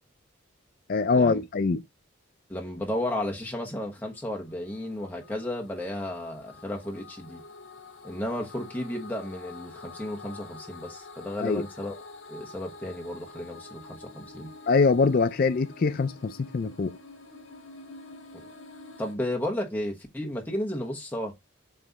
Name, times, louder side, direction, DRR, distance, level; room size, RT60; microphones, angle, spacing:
voice 1, 0.9-1.8 11.4-11.6 14.7-17.0, left 4 dB, 45° left, 0.4 m, -23 dB
voice 2, 2.5-7.4 8.0-12.0 12.3-14.5 18.3-18.4 19.0-21.3, left 1 dB, 10° left, 1.1 m, -33 dB
sound 1, 4.2-19.2, left 3 dB, 70° left, 1.5 m, -47 dB
7.4 x 3.1 x 4.0 m
head